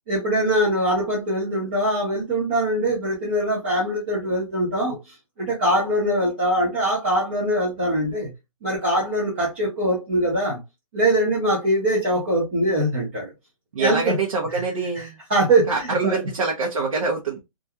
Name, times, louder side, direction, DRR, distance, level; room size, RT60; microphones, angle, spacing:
voice 1, 0.1-8.3 8.6-10.6 10.9-13.3 13.8-14.2 14.5-14.6 14.9-15.0 15.3-16.2, right 1 dB, 20° right, 0.5 m, -22 dB
voice 2, 13.7-15.2 15.7-17.4, right 4 dB, 70° right, 0.8 m, -25 dB
2.4 x 2.2 x 2.7 m
hypercardioid pair, 175°, 17 cm